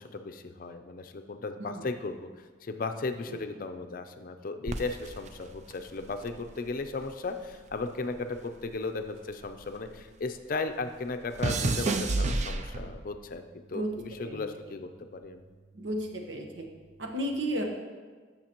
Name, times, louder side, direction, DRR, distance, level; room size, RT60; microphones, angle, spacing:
voice 1, 0.0-13.4 13.7-15.5, left 3 dB, 50° left, 7 dB, 0.5 m, -36 dB
sound 1, 4.7-7.2 7.4-10.1 10.4-13.2 13.9-14.3, right 3 dB, 40° right, 0.4 m, -32 dB
voice 2, 15.7-16.7 17.0-17.6, right 1 dB, 85° right, 1 dB, 1.2 m, -33 dB
13.5 x 5.8 x 3.0 m, 1.5 s
head